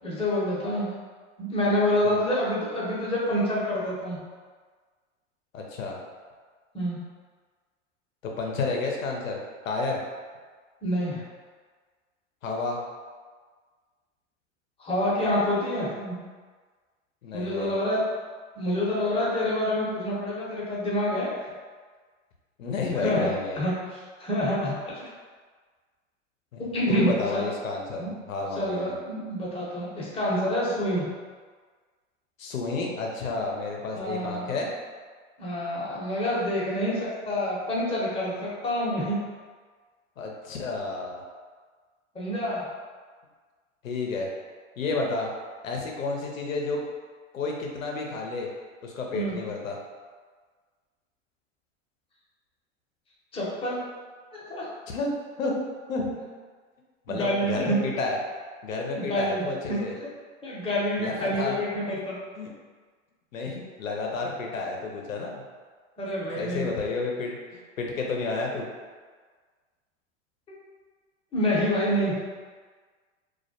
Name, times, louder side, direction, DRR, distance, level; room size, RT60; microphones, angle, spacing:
voice 1, 0.0-0.9 1.4-4.2 6.7-7.0 10.8-11.2 14.8-16.2 17.3-18.0 18.6-21.4 23.0-25.1 26.6-27.5 28.0-28.1 28.6-31.1 33.9-34.5 35.4-39.2 42.1-42.7 49.1-49.4 53.3-53.8 54.3-54.7 57.1-57.8 58.9-59.4 59.7-59.8 60.4-62.1 66.0-66.7 71.3-72.1, equal, 15° left, -7 dB, 0.7 m, -27 dB
voice 2, 5.5-6.0 8.4-10.0 12.4-12.8 17.2-17.7 22.6-23.6 26.5-28.9 32.4-34.7 40.2-41.2 43.8-44.3 44.8-45.3 45.6-46.8 47.3-48.5 48.8-49.8 54.9-55.1 55.4-55.6 55.9-56.2 57.1-58.2 58.6-59.9 61.0-61.6 61.8-62.0 62.4-62.5 63.3-65.5 66.4-68.7, left 3 dB, 85° left, 0 dB, 0.6 m, -31 dB
2.3 x 2.1 x 2.7 m, 1.5 s
hypercardioid pair, 95°, 39 cm